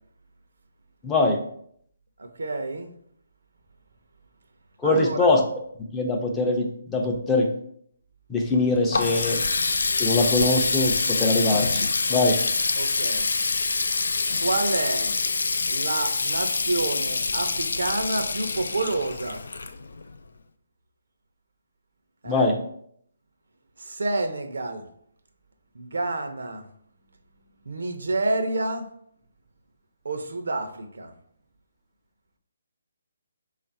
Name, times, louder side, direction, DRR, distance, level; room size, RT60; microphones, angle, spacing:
voice 1, 1.0-1.4 4.8-5.4 5.9-7.5 8.3-9.4 10.0-12.4 22.3-22.5, left 2 dB, 10° left, 1 dB, 0.5 m, -22 dB
voice 2, 2.2-2.9 4.8-5.3 12.8-13.3 14.3-15.2 15.7-19.4 22.2-22.5 23.8-24.9 25.7-26.7 27.7-28.9 30.0-31.1, right 2 dB, 80° right, 6 dB, 0.6 m, -29 dB
Water tap faucet, 8.5-20.2, left 4 dB, 75° left, 0.3 m, -26 dB
3.3 x 2.5 x 4.1 m, 0.67 s
hypercardioid pair, 155°, 0 cm